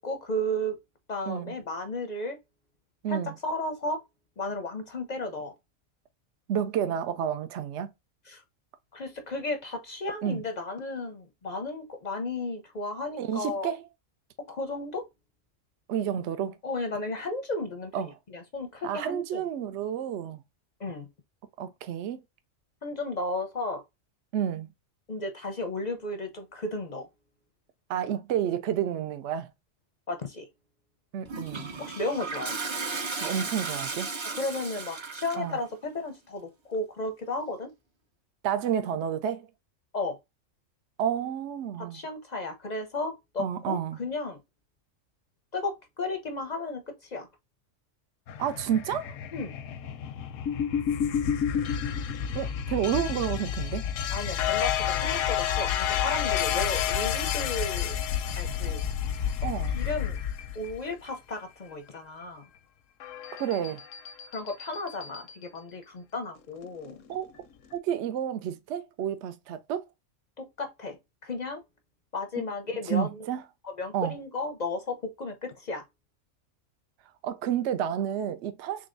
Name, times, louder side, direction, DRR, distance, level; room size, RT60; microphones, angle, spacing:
voice 1, 0.0-0.8 1.1-2.4 3.1-4.0 4.4-5.5 8.3-8.4 8.9-13.7 14.4-15.1 16.6-19.4 20.8-21.1 22.8-23.8 25.1-27.1 30.1-30.5 31.8-32.6 34.3-37.7 39.9-40.2 41.8-44.4 45.5-47.3 49.3-49.5 54.1-58.0 58.4-58.8 59.7-60.2 60.5-62.5 64.3-67.0 70.4-71.0 71.2-71.6 72.1-73.3 73.6-75.8, left 2 dB, 50° left, 0.6 m, -34 dB
voice 2, 3.0-3.3 6.5-7.9 10.2-10.4 13.2-13.8 15.9-16.6 17.9-18.1 18.8-20.4 21.6-22.2 24.3-24.7 27.9-29.5 31.1-31.7 33.2-34.1 35.3-35.6 38.4-39.5 41.0-42.0 43.4-44.0 48.4-49.1 52.3-53.8 59.4-59.8 63.4-63.8 67.1-67.3 67.7-69.8 72.9-73.4 73.9-74.2 77.2-78.9, right 9 dB, 70° right, 0.8 m, -30 dB
Toilet flush, 31.3-35.5, right 4 dB, 45° right, 0.3 m, -35 dB
sound 1, 48.3-61.3 63.0-65.4 66.6-67.1, left 9 dB, 80° left, 1.0 m, -30 dB
3.8 x 3.5 x 2.5 m
omnidirectional pair, 1.3 m